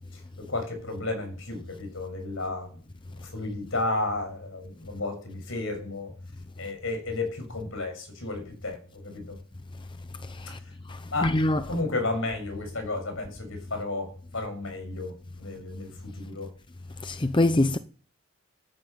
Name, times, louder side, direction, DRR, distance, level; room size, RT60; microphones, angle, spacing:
voice 1, 0.4-2.7 3.2-6.1 6.6-9.4 11.1-11.4 11.7-16.5, left 2 dB, 60° left, 6.7 m, -33 dB
voice 2, 10.9-11.6 17.0-17.8, left 1 dB, 20° left, 0.7 m, -24 dB
14.5 x 11.0 x 9.1 m
head